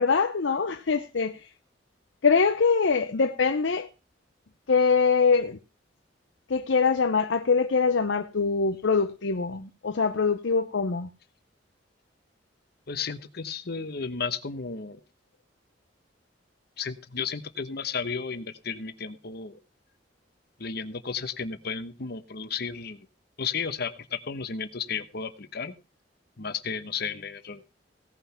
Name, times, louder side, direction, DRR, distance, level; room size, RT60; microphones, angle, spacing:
voice 1, 0.0-1.5 2.2-3.9 4.7-5.6 6.5-11.1, left 5 dB, 80° left, 0.7 m, -23 dB
voice 2, 12.9-15.0 16.8-19.6 20.6-23.1 23.4-25.7 26.4-27.6, left 5 dB, 60° left, 1.0 m, -33 dB
17.0 x 5.8 x 5.7 m
head